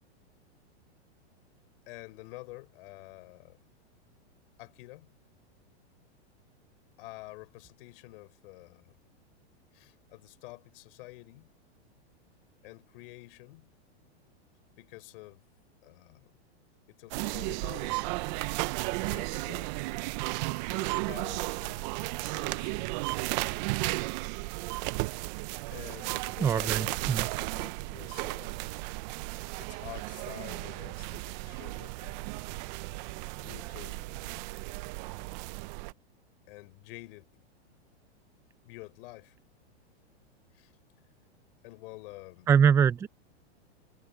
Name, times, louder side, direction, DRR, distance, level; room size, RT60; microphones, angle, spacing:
voice 1, 1.9-3.6 4.6-5.1 7.0-9.0 9.7-11.6 12.6-13.7 14.8-15.4 15.8-16.4 16.9-18.3 19.0-19.9 20.7-23.3 25.7-28.7 29.6-32.5 33.3-34.5 36.5-37.4 38.6-39.4 40.5-40.7 41.6-42.5, left 21 dB, 55° left, 6.3 m, -49 dB
sound 1, 17.1-35.9, right 24 dB, 40° right, 0.7 m, -34 dB
voice 2, 26.4-27.2 42.5-43.1, right 7 dB, 10° right, 0.4 m, -23 dB
hypercardioid pair, 140°, 33 cm